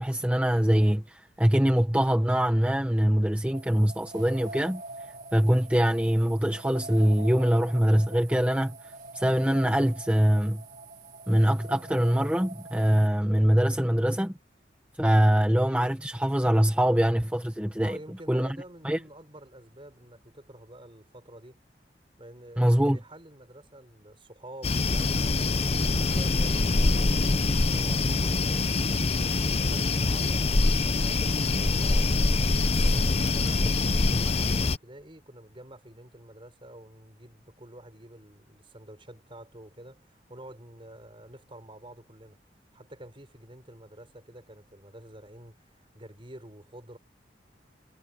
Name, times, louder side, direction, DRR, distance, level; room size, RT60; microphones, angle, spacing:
voice 1, 0.0-10.6 11.3-14.3 15.0-18.0 18.3-18.6 18.8-19.0 22.6-23.0, equal, 10° right, 1.2 m, -23 dB
sound 1, 3.5-13.1, right 2 dB, 50° right, 4.3 m, -45 dB
voice 2, 17.8-21.6 22.2-25.4 25.8-32.1 32.8-42.4 42.7-47.0, right 1 dB, 30° right, 5.6 m, -48 dB
sound 2, 24.6-34.8, left 3 dB, 35° left, 0.7 m, -24 dB
head